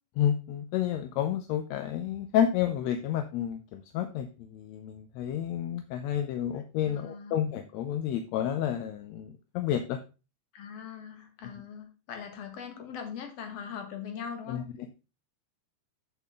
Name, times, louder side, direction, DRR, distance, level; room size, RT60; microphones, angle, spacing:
voice 1, 0.2-10.0 14.5-14.6, left 10 dB, 75° left, 8 dB, 1.8 m, -30 dB
voice 2, 6.8-7.4 10.5-14.6, left 7 dB, 60° left, 5 dB, 2.5 m, -41 dB
8.4 x 7.0 x 3.7 m, 0.31 s
omnidirectional pair, 3.4 m